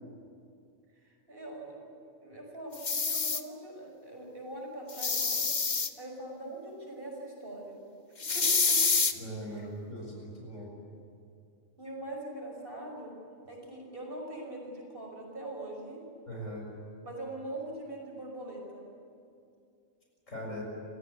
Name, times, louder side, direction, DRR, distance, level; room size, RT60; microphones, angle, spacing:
voice 1, 1.0-1.8 2.2-7.9 8.3-8.8 9.4-9.7 11.8-13.1 13.5-16.0 17.0-18.9, right 1 dB, 45° right, 0 dB, 5.9 m, -42 dB
sound 1, 2.7-3.4 4.9-5.9 8.2-9.1, left 4 dB, 35° left, 1.1 m, -27 dB
voice 2, 9.2-10.7 16.3-16.7 20.3-20.6, equal, 70° left, -1 dB, 7.1 m, -40 dB
27.5 x 17.0 x 9.6 m, 2.5 s
omnidirectional pair, 1.4 m